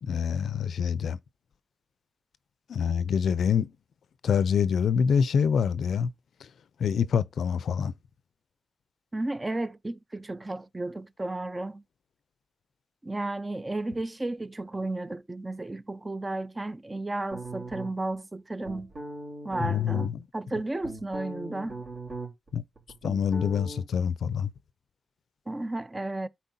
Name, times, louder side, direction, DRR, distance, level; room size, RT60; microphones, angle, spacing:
voice 1, 0.0-1.2 2.7-3.7 4.2-6.1 6.4-6.5 6.8-7.9 19.6-20.2 22.5-22.6 23.0-24.5, left 7 dB, 90° left, 0.4 m, -26 dB
voice 2, 9.1-11.8 13.0-18.9 19.4-20.1 20.3-21.8 25.5-26.3, right 2 dB, 20° right, 0.4 m, -33 dB
sound 1, 17.3-18.2 18.6-20.1 20.6-22.5 22.8-23.8, right 2 dB, 60° right, 3.5 m, -39 dB
12.5 x 4.4 x 2.6 m
wide cardioid pair, 115°, 0 cm